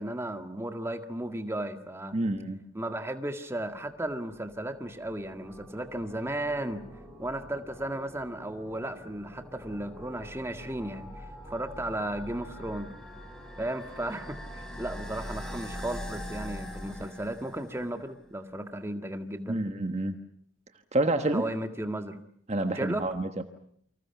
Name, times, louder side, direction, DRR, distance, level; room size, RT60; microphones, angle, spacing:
voice 1, 0.0-2.2 2.7-6.9 7.2-12.9 13.6-19.6 21.3-22.2 22.8-23.0, right 1 dB, 15° right, 6 dB, 1.8 m, -35 dB
voice 2, 2.1-2.6 19.5-20.2 20.9-21.4 22.5-23.4, right 2 dB, 35° right, 7 dB, 1.3 m, -28 dB
sound 1, 3.9-18.0, equal, 5° left, 5.3 m, -44 dB
29.0 x 25.5 x 6.0 m, 0.64 s
head